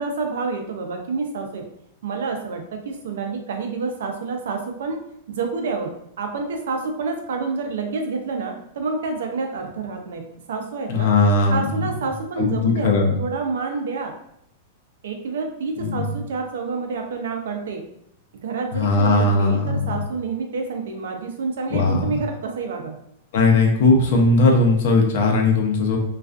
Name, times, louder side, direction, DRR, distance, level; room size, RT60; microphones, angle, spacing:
voice 1, 0.0-1.6 2.0-5.0 5.3-11.1 11.5-14.2 15.0-17.8 18.3-23.0, right 4 dB, 85° right, 4 dB, 0.5 m, -28 dB
voice 2, 10.9-11.7 12.4-13.1 15.8-16.0 18.7-20.0 21.7-22.1 23.3-26.0, left 3 dB, 65° left, 1 dB, 0.6 m, -18 dB
2.4 x 2.3 x 2.3 m, 0.73 s
supercardioid pair, 150°, 0 cm